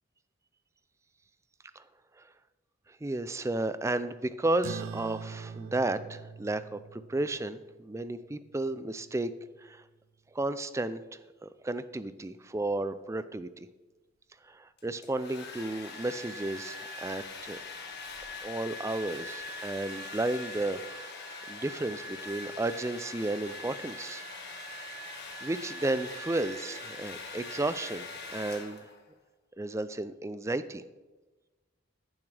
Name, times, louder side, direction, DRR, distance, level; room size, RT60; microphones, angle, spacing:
voice 1, 2.9-9.3 9.6-9.8 10.3-13.7 14.4-17.6 18.4-24.2 25.4-28.9 29.6-30.8, right 2 dB, 15° right, 13 dB, 0.3 m, -33 dB
sound 1, 4.6-9.5, right 6 dB, 85° right, 0.4 m, -44 dB
Domestic sounds home sounds, 14.8-29.1, left 2 dB, 55° left, 1.6 m, -42 dB
16.0 x 7.2 x 3.4 m, 1.2 s
head